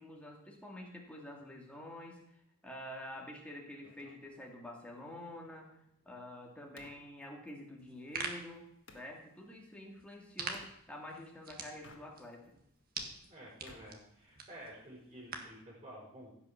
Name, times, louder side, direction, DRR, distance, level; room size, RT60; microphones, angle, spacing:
voice 1, 0.0-8.7 8.9-12.4, left 1 dB, 5° left, -1 dB, 2.2 m, -48 dB
sound 1, 3.8-9.1 10.5-10.8 11.7-12.5 12.8-14.7, left 3 dB, 55° left, 1.6 m, -61 dB
sound 2, 7.8-15.6, right 4 dB, 40° right, 1.7 m, -46 dB
voice 2, 13.3-16.3, right 1 dB, 20° right, -4 dB, 5.0 m, -51 dB
16.0 x 6.1 x 7.2 m, 0.77 s
head